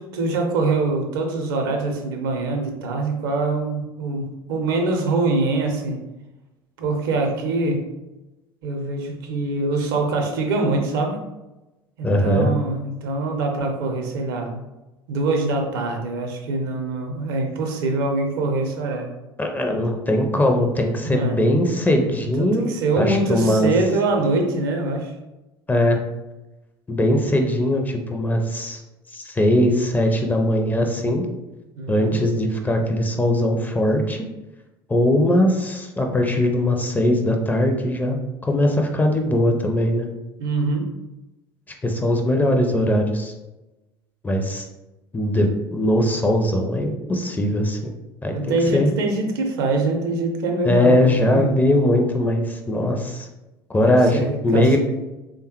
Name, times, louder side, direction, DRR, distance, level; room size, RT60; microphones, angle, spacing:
voice 1, 0.1-6.0 6.8-7.8 8.6-11.2 12.0-14.6 15.1-19.1 21.0-21.4 22.4-25.1 31.8-32.2 40.4-40.9 48.3-51.5 53.8-54.8, right 3 dB, 65° right, 3 dB, 0.6 m, -24 dB
voice 2, 12.0-12.5 19.4-22.7 23.0-23.7 25.7-26.0 26.9-28.8 29.1-31.2 31.9-34.2 34.9-40.1 41.8-43.3 44.2-44.7 45.1-48.9 50.6-53.3 53.7-54.8, left 1 dB, 15° left, 3 dB, 0.4 m, -20 dB
3.3 x 2.1 x 2.9 m, 1.0 s
figure-of-eight pair, 65°, 13 cm